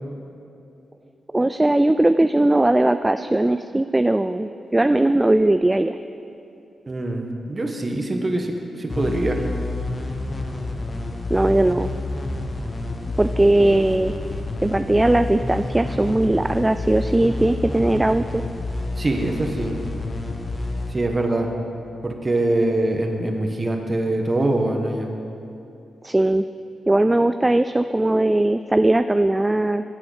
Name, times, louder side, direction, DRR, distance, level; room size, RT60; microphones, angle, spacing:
voice 1, 1.3-5.9 11.3-11.9 13.2-14.1 14.6-18.5 26.0-26.5 26.9-29.8, right 1 dB, 20° right, 10 dB, 0.3 m, -19 dB
voice 2, 6.9-9.4 18.9-19.7 20.9-21.5 22.0-25.1, right 2 dB, 35° right, 3 dB, 1.4 m, -23 dB
sound 1, 8.9-22.2, left 2 dB, 40° left, 1.2 m, -29 dB
10.0 x 8.4 x 5.0 m, 2.7 s
supercardioid pair, 40°, 0 cm